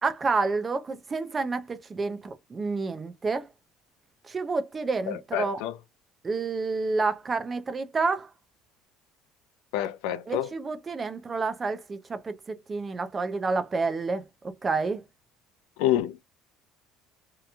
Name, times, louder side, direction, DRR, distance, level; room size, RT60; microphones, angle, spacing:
voice 1, 0.0-3.5 4.3-5.6 6.2-8.3 10.3-14.3 14.6-15.0, right 4 dB, 20° right, 0.4 m, -29 dB
voice 2, 5.1-5.7 9.7-10.5 15.8-16.2, left 12 dB, 80° left, 0.4 m, -27 dB
2.8 x 2.5 x 2.2 m
cardioid pair, 170°, 0 cm